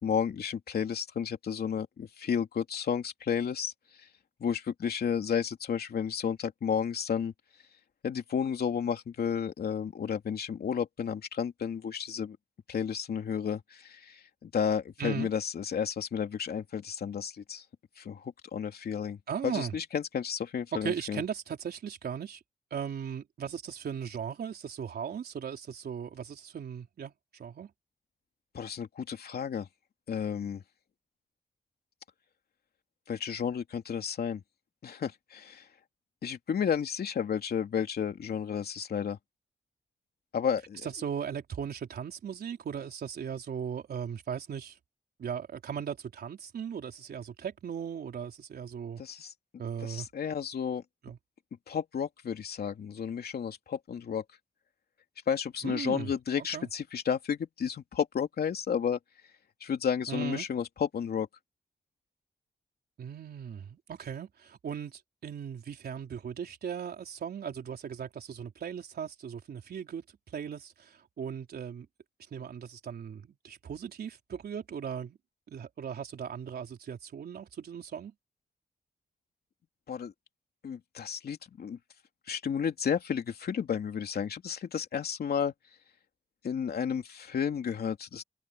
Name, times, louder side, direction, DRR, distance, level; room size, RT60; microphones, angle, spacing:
voice 1, 0.0-3.7 4.4-7.3 8.0-12.4 12.7-17.6 18.0-19.2 19.4-21.2 28.5-29.7 30.1-30.6 33.1-34.4 34.8-35.6 36.2-39.2 40.3-40.9 49.0-49.3 49.8-50.8 51.7-54.2 55.3-59.0 59.6-61.3 79.9-80.1 80.6-81.8 82.3-85.5 86.4-88.2, left 7 dB, 80° left, 3.0 m, -32 dB
voice 2, 19.3-19.7 20.8-22.4 22.7-27.7 40.8-44.7 45.2-49.0 49.6-50.1 51.0-51.2 55.6-56.1 56.5-56.7 60.1-60.4 63.0-70.0 70.3-71.9 72.3-75.2 75.5-78.1, right 7 dB, 85° right, 4.0 m, -38 dB
cardioid pair, 65°, 16 cm